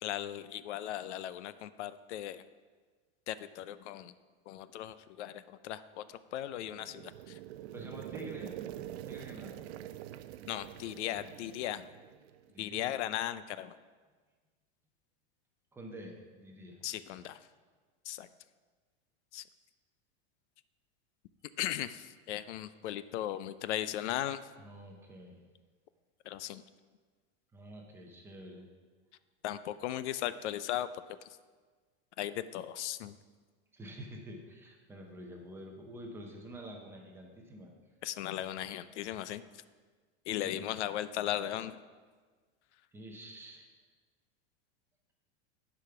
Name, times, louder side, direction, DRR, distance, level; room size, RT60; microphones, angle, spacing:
voice 1, 0.0-2.4 3.3-4.1 4.5-7.4 10.5-11.9 12.6-13.8 16.8-17.4 18.0-18.3 19.3-19.4 21.6-24.4 26.3-26.6 29.4-30.9 32.2-33.2 38.0-39.4 40.3-41.8, left 12 dB, 85° left, 14 dB, 0.5 m, -37 dB
sound 1, 6.4-12.5, right 12 dB, 65° right, 0.5 m, -45 dB
voice 2, 7.7-8.6 9.0-9.6 12.5-12.9 15.7-16.8 24.6-25.4 27.5-28.7 33.7-37.7 40.4-40.7 42.9-43.7, equal, 5° right, 1 dB, 0.6 m, -48 dB
10.0 x 5.1 x 5.7 m, 1.5 s
supercardioid pair, 170°, 34 cm